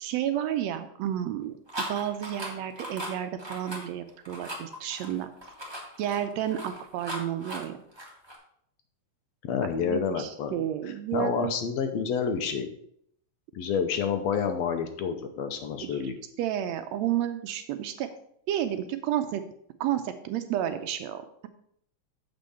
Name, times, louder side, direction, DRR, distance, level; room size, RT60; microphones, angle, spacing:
voice 1, 0.0-1.6 1.9-5.3 6.0-7.8 9.6-11.5 15.9-16.0 16.4-18.1 18.5-19.4 19.8-21.5, right 11 dB, 80° right, 9 dB, 1.7 m, -31 dB
sound 1, 1.7-8.3, right 1 dB, 15° right, 0.9 m, -38 dB
voice 2, 9.4-12.7 13.5-16.2, left 7 dB, 75° left, 7 dB, 1.8 m, -29 dB
7.0 x 5.3 x 5.6 m, 0.69 s
omnidirectional pair, 3.3 m